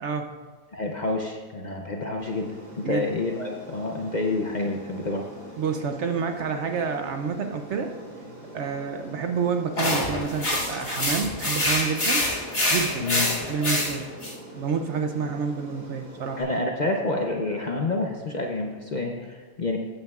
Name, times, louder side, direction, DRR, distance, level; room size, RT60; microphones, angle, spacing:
voice 1, 0.0-0.4 2.8-3.1 5.6-7.9 8.5-12.3 12.7-13.1 13.5-14.2 14.5-16.4, right 6 dB, 60° right, 6 dB, 0.8 m, -28 dB
voice 2, 0.7-5.2 13.0-13.3 16.4-19.8, left 2 dB, 45° left, 1 dB, 0.6 m, -28 dB
Aircraft, 2.2-16.4, equal, 35° right, 3.3 m, -43 dB
sound 1, 9.8-14.3, left 1 dB, 70° left, 2.6 m, -26 dB
14.5 x 8.9 x 2.4 m, 1.3 s
omnidirectional pair, 1.5 m